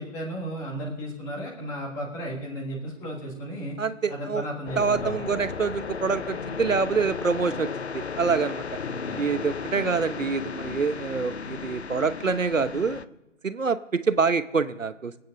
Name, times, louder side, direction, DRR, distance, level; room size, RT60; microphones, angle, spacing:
voice 1, 0.0-3.8 4.1-5.4 8.8-9.3, equal, 5° left, -1 dB, 1.6 m, -34 dB
voice 2, 3.8-4.4 4.8-8.6 9.2-13.0 13.4-15.2, right 5 dB, 80° right, 13 dB, 1.0 m, -26 dB
sound 1, 4.7-13.1, left 5 dB, 55° left, 0.7 m, -35 dB
20.0 x 9.0 x 6.6 m, 0.96 s
figure-of-eight pair, 155°, 39 cm